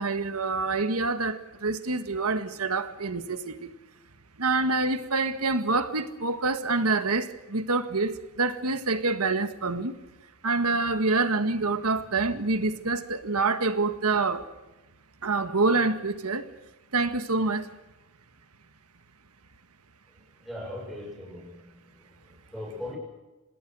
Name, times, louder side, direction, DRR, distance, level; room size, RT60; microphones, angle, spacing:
voice 1, 0.0-3.7 4.4-9.9 10.4-14.4 15.2-16.5 16.9-17.7, right 3 dB, 75° right, 1.7 m, -26 dB
voice 2, 20.4-21.8 22.5-23.0, left 1 dB, ahead, 6.8 m, -38 dB
27.0 x 20.0 x 6.3 m
head